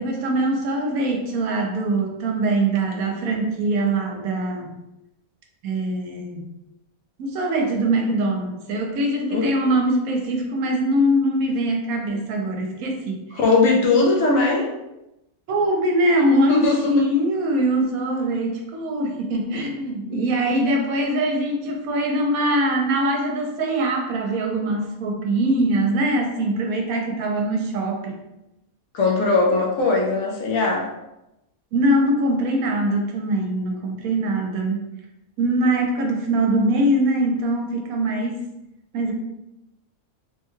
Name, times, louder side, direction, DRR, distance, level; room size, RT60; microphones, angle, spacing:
voice 1, 0.0-4.7 5.6-6.5 7.2-13.2 15.5-28.2 31.7-34.8 35.4-38.4 38.9-39.1, right 1 dB, 75° right, 2 dB, 1.0 m, -22 dB
voice 2, 13.3-14.7 16.5-16.9 28.9-30.9, left 3 dB, 70° left, -1 dB, 1.0 m, -19 dB
3.4 x 2.2 x 3.0 m, 0.92 s
omnidirectional pair, 1.6 m